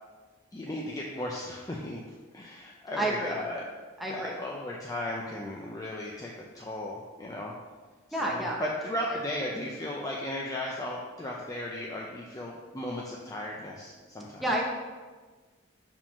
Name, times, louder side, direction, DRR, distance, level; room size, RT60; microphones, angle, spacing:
voice 1, 0.5-2.0 2.3-3.6 4.1-7.5 8.2-14.4, left 1 dB, 15° left, -3 dB, 0.4 m, -36 dB
voice 2, 2.9-3.4 4.0-4.4 8.1-8.7 9.1-9.2 14.4-14.6, right 1 dB, ahead, -3 dB, 0.8 m, -30 dB
4.9 x 3.7 x 5.7 m, 1.4 s
head